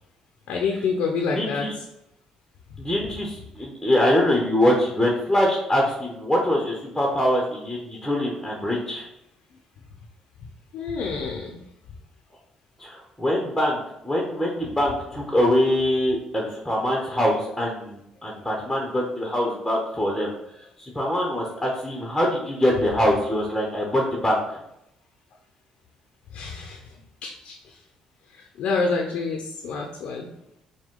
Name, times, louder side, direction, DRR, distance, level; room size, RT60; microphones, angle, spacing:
voice 1, 0.5-1.7 10.7-11.6 26.3-26.9 27.2-27.8 28.3-30.3, left 4 dB, 70° left, 2 dB, 0.6 m, -28 dB
voice 2, 1.3-1.7 2.8-9.1 12.8-20.3 20.8-24.6, left 1 dB, 5° left, -1 dB, 1.0 m, -23 dB
4.9 x 2.2 x 3.8 m, 0.80 s
supercardioid pair, 70°, 2 cm